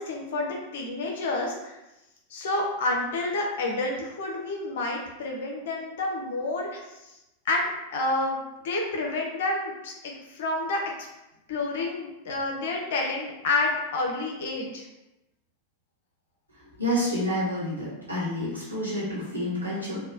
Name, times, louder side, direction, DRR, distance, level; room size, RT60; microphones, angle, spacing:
voice 1, 0.0-1.8 2.3-7.0 7.5-10.8 11.5-14.8, left 2 dB, 55° left, 0 dB, 0.6 m, -29 dB
voice 2, 16.8-20.0, equal, 90° right, -9 dB, 1.1 m, -29 dB
2.9 x 2.2 x 2.7 m, 0.95 s
figure-of-eight pair, 90°, 0 cm